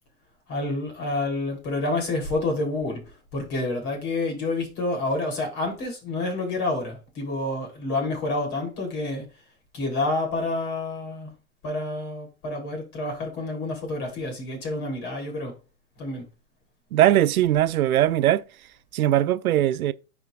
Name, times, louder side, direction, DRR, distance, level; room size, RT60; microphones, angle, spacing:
voice 1, 0.5-3.0 3.3-9.2 9.7-11.3 11.6-15.5 16.0-16.2, left 2 dB, 35° left, 3.4 m, -28 dB
voice 2, 16.9-18.4 18.9-19.9, right 12 dB, 75° right, 0.5 m, -20 dB
9.8 x 4.7 x 2.4 m
hypercardioid pair, 140°, 43 cm